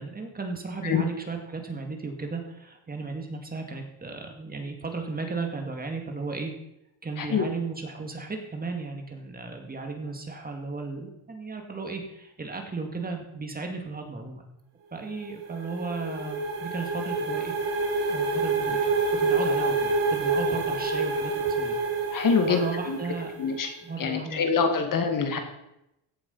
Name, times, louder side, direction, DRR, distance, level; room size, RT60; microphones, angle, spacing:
voice 1, 0.0-6.5 7.0-14.4 14.9-17.8 18.1-21.8 22.1-23.3 23.8-24.9, right 4 dB, 20° right, 3 dB, 2.2 m, -35 dB
sound 1, 15.1-23.7, right 3 dB, 75° right, 3.8 m, -28 dB
voice 2, 22.1-23.0 23.4-25.4, left 5 dB, 45° left, 5 dB, 2.0 m, -25 dB
16.0 x 7.0 x 5.5 m, 0.85 s
cardioid pair, 120°, 43 cm